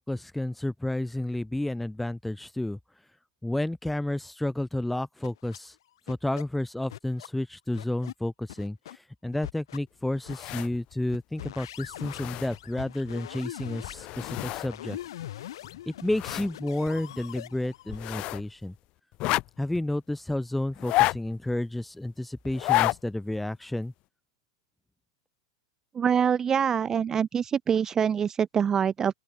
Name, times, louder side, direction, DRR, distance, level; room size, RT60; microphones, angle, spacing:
voice 1, 0.0-2.8 3.4-5.7 6.1-15.0 15.9-18.7 19.6-23.9, left 1 dB, 5° left, 1.1 m, -31 dB
sound 1, 5.2-5.6 6.1-6.4 6.9-7.3 7.7-8.1 8.5-9.0 9.3-9.8 10.1-10.6 11.1-18.0, left 13 dB, 70° left, 4.3 m, -42 dB
sound 2, 10.2-10.9 11.4-11.5 11.8-12.8 13.8-14.7 15.0-15.1 15.6-16.5 16.9-17.0 17.9-18.5 19.1-19.8 20.7-21.5 22.5-23.0 23.4-23.5, left 19 dB, 40° left, 1.0 m, -29 dB
voice 2, 25.9-29.2, right 7 dB, 20° right, 0.7 m, -25 dB
open air
hypercardioid pair, 120°, 3 cm